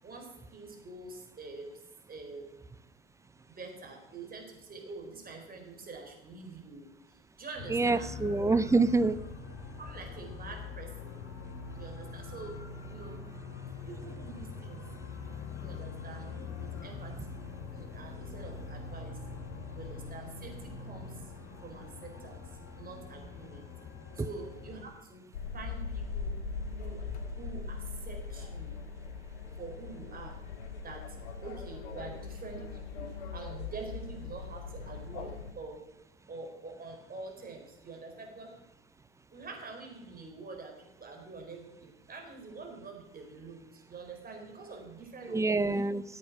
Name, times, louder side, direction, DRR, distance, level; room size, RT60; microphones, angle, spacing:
voice 1, 0.0-1.8 2.1-2.5 3.5-8.1 9.8-11.3 11.7-12.6 12.9-13.2 13.9-14.9 15.6-17.4 17.7-19.2 19.7-21.3 21.6-23.7 24.1-25.3 25.5-26.4 26.7-27.0 27.3-28.8 29.6-30.4 30.8-35.8 36.3-38.6 39.3-45.8, right 3 dB, 25° right, 2 dB, 4.5 m, -46 dB
sound 1, 7.5-24.8, left 4 dB, 50° left, 3.3 m, -43 dB
voice 2, 7.7-9.2 45.3-46.0, right 3 dB, 10° right, 14 dB, 0.6 m, -26 dB
sound 2, 25.3-35.5, left 4 dB, 65° left, 2.4 m, -40 dB
14.5 x 8.5 x 6.2 m, 0.93 s
hypercardioid pair, 70°, 32 cm